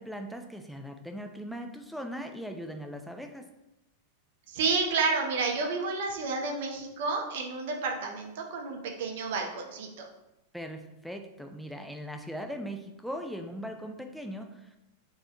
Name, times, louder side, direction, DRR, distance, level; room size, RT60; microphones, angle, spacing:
voice 1, 0.0-3.5 10.5-14.8, equal, ahead, 4 dB, 0.4 m, -39 dB
voice 2, 4.5-10.1, right 4 dB, 55° right, 2 dB, 0.6 m, -30 dB
3.3 x 2.6 x 3.4 m, 0.92 s
figure-of-eight pair, 90°, 0 cm